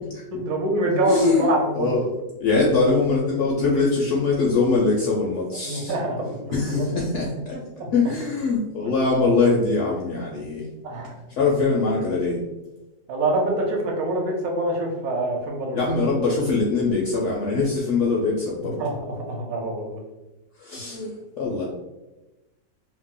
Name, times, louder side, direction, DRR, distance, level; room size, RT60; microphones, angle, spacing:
voice 1, 0.3-2.1 5.6-6.3 6.7-6.9 7.8-7.9 10.8-11.1 13.1-15.8 18.6-20.0, right 1 dB, 70° right, 1 dB, 1.1 m, -25 dB
voice 2, 1.1-1.5 1.8-2.1 2.4-5.9 6.5-7.6 7.9-10.6 11.4-12.4 15.7-18.8 20.6-21.6, left 3 dB, 70° left, -3 dB, 0.7 m, -22 dB
2.8 x 2.0 x 3.6 m, 1.0 s
omnidirectional pair, 1.7 m